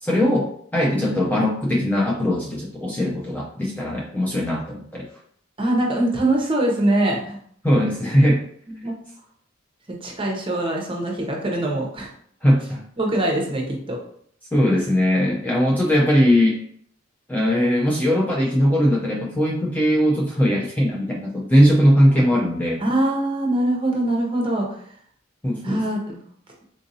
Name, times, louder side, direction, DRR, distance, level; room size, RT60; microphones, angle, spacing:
voice 1, 0.0-5.1 7.6-8.4 12.4-12.8 14.5-16.6 17.3-22.8 25.4-25.9, equal, 10° left, -3 dB, 0.3 m, -20 dB
voice 2, 5.6-7.4 8.7-9.0 10.0-12.1 13.0-14.0 22.1-22.3 22.8-24.8 25.6-26.2, right 1 dB, 25° right, 0 dB, 0.7 m, -23 dB
3.8 x 2.6 x 2.6 m, 0.63 s
head